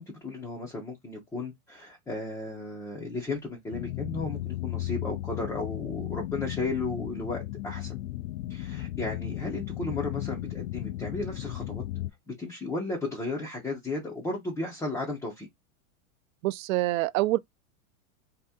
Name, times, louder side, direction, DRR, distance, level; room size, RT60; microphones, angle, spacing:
voice 1, 0.0-7.9 8.5-11.8 12.4-15.5, left 2 dB, 5° left, 0.4 m, -34 dB
sound 1, 3.7-12.1, left 15 dB, 85° left, 0.5 m, -35 dB
voice 2, 16.4-17.4, right 17 dB, 70° right, 0.5 m, -26 dB
2.8 x 2.6 x 3.4 m
supercardioid pair, 150°, 42 cm